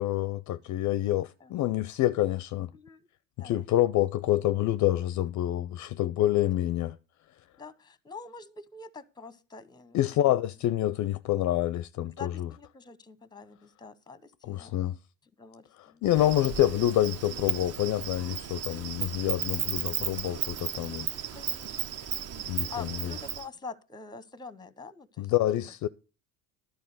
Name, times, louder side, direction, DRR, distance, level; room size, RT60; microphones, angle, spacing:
voice 1, 0.0-2.7 3.4-7.0 9.9-12.5 14.5-15.0 16.0-21.1 22.5-23.1 25.2-25.9, left 13 dB, 45° left, 0.4 m, -27 dB
voice 2, 2.7-3.1 3.4-3.6 7.6-10.2 12.2-14.8 15.4-16.1 18.6-18.9 21.3-21.8 22.7-25.3, left 4 dB, 10° left, 0.7 m, -45 dB
Insect, 16.1-23.5, right 9 dB, 40° right, 0.6 m, -35 dB
11.0 x 4.5 x 7.7 m
supercardioid pair, 95°, 40 cm